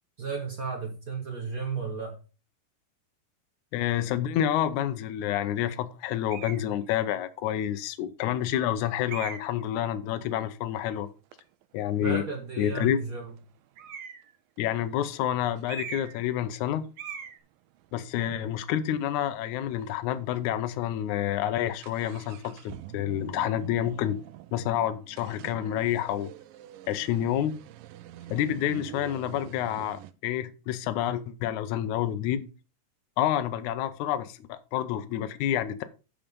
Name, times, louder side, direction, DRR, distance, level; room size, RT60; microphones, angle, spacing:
voice 1, 0.2-2.2 12.0-13.3 18.3-18.5, right 5 dB, 35° right, 1.4 m, -34 dB
voice 2, 3.7-11.1 11.7-12.2 12.6-13.0 14.6-16.8 17.9-24.2 24.5-26.3 26.9-27.5 28.3-32.5 33.2-35.8, left 11 dB, 75° left, 1.8 m, -28 dB
sound 1, 6.3-6.7 7.5-7.6 9.1-9.6 13.8-14.3 15.7-16.3 16.5-16.7 17.0-17.4, right 6 dB, 60° right, 1.6 m, -39 dB
sound 2, 10.8-10.9 11.3-14.0 14.6-14.7 15.0-15.2 15.6-19.2 19.5-19.6 19.8-19.9 20.5-20.7 21.0-30.1, right 13 dB, 80° right, 2.2 m, -47 dB
8.8 x 5.8 x 5.4 m
omnidirectional pair, 4.3 m